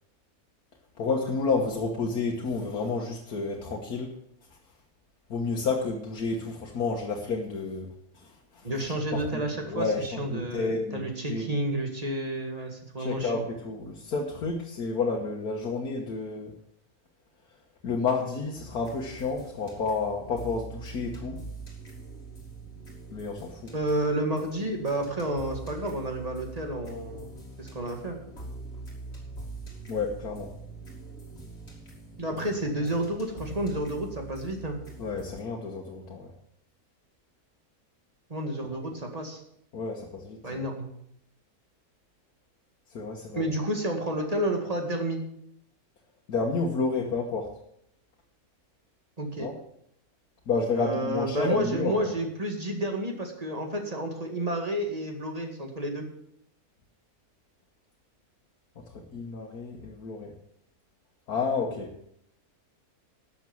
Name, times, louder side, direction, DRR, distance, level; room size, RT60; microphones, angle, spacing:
voice 1, 1.0-4.1 4.5-4.6 5.3-7.9 8.1-11.5 13.0-16.5 17.8-21.4 23.1-23.7 29.9-30.5 35.0-36.3 39.7-40.6 42.9-43.5 46.3-47.6 49.4-49.6 50.5-52.1 58.8-60.4 61.3-62.0, left 4 dB, 85° left, -1 dB, 1.9 m, -30 dB
voice 2, 8.6-13.3 23.7-27.3 27.6-28.2 32.2-34.8 38.3-39.4 40.4-40.9 43.3-45.2 49.2-49.5 50.8-56.0, right 1 dB, 25° right, 3 dB, 2.1 m, -30 dB
sound 1, 18.5-35.4, right 2 dB, 45° left, 2.9 m, -44 dB
12.5 x 7.2 x 7.1 m, 0.73 s
omnidirectional pair, 1.6 m